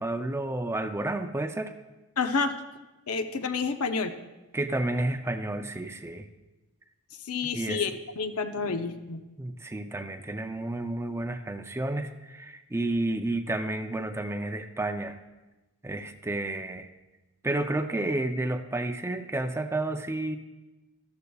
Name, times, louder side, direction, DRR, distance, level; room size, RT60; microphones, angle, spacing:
voice 1, 0.0-1.7 4.5-6.3 7.5-7.9 8.6-8.7 9.4-15.2 15.8-16.9 17.4-20.4, right 2 dB, 10° right, 8 dB, 0.4 m, -31 dB
voice 2, 2.2-2.5 3.1-4.1 7.3-9.2, left 4 dB, 70° left, 8 dB, 0.7 m, -29 dB
13.5 x 13.0 x 2.3 m, 1.1 s
head